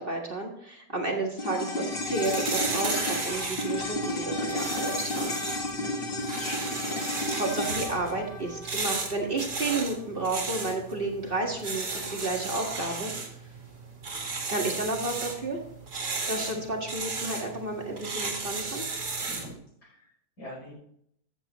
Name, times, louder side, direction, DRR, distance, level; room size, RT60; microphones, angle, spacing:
voice 1, 0.0-5.4 7.3-13.1 14.5-15.6 16.3-18.8, right 2 dB, 35° right, 0 dB, 1.7 m, -31 dB
sound 1, 1.4-9.9 10.1-10.2, left 1 dB, 35° left, 1.6 m, -32 dB
sound 2, 1.9-19.6, right 4 dB, 75° right, 2.5 m, -35 dB
voice 2, 5.8-7.1 19.2-19.5 19.8-19.9 20.4-20.7, left 1 dB, 75° left, -4 dB, 5.8 m, -43 dB
14.0 x 8.2 x 3.0 m, 0.69 s
omnidirectional pair, 1.7 m